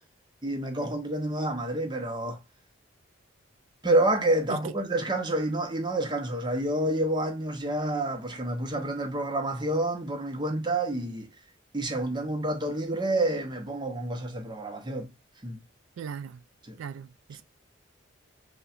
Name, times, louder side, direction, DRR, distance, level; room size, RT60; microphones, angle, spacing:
voice 1, 0.4-2.4 3.8-11.3 11.7-15.1 15.4-15.6 16.7-16.8, right 1 dB, 20° right, 0.7 m, -28 dB
voice 2, 16.0-16.4 16.8-17.4, right 7 dB, 80° right, 0.3 m, -38 dB
5.5 x 2.2 x 2.4 m
head